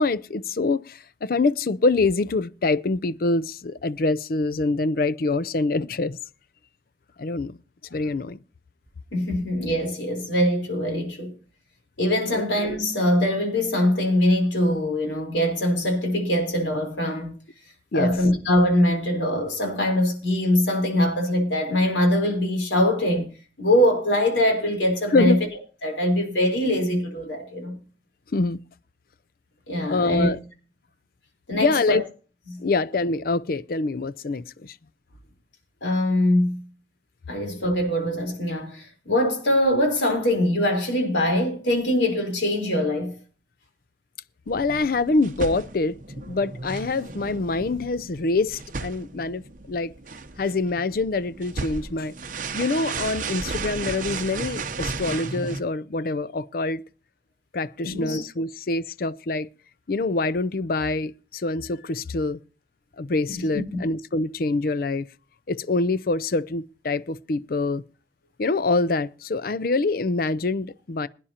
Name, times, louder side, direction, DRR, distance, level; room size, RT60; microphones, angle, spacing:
voice 1, 0.0-6.2 7.2-7.6 7.9-8.4 12.3-12.4 17.9-18.1 25.1-25.4 28.3-28.6 29.7-30.4 31.5-32.0 32.6-34.8 44.5-49.9 50.4-52.1 52.5-56.8 57.5-59.5 59.9-62.4 63.0-65.1 65.5-67.8 68.4-71.1, left 3 dB, 55° left, 0.5 m, -25 dB
voice 2, 9.1-11.3 12.0-17.4 17.9-23.3 23.6-25.4 25.8-27.7 29.7-30.3 31.5-32.0 32.5-32.6 35.8-36.6 37.3-43.2 55.0-55.2 57.8-58.2 63.4-63.5 63.7-63.8, left 1 dB, 90° left, 4.0 m, -23 dB
sound 1, 44.5-55.6, right 4 dB, 45° right, 0.8 m, -35 dB
21.5 x 10.0 x 2.8 m
head